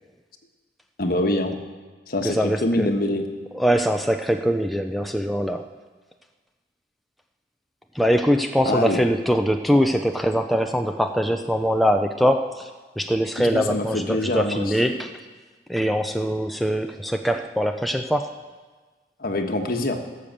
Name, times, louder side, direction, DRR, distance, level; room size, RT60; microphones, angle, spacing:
voice 1, 1.0-1.6 2.1-3.2 8.6-9.0 13.4-15.0 19.2-20.0, left 1 dB, 55° left, 4 dB, 1.3 m, -25 dB
voice 2, 2.2-2.9 3.5-5.7 7.9-12.7 13.0-15.1 15.7-18.3, equal, ahead, 5 dB, 0.5 m, -22 dB
17.0 x 6.9 x 7.4 m, 1.4 s
head